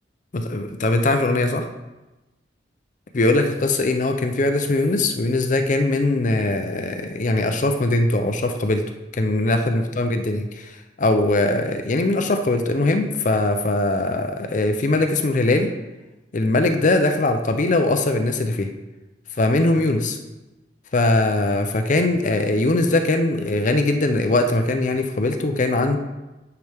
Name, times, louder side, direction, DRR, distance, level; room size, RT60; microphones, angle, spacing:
voice 1, 0.3-1.7 3.1-8.8 9.1-15.7 16.3-18.7 19.4-20.2 20.9-26.0, left 2 dB, 40° left, 6 dB, 0.5 m, -21 dB
9.4 x 5.9 x 3.4 m, 1.1 s
head